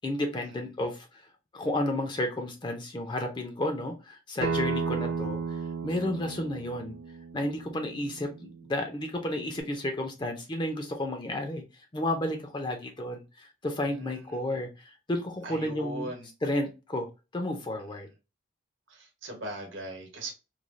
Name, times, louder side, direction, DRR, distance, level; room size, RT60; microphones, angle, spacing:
voice 1, 0.0-1.1 1.5-5.4 5.8-6.9 7.3-11.6 11.9-16.1 16.4-17.1 17.3-18.1, left 1 dB, 25° left, 0.4 m, -32 dB
Acoustic guitar, 4.4-9.6, right 5 dB, 50° right, 0.5 m, -35 dB
voice 2, 13.8-14.4 15.4-16.3 18.9-20.3, right 1 dB, 70° right, 1.0 m, -40 dB
3.1 x 2.3 x 2.4 m
head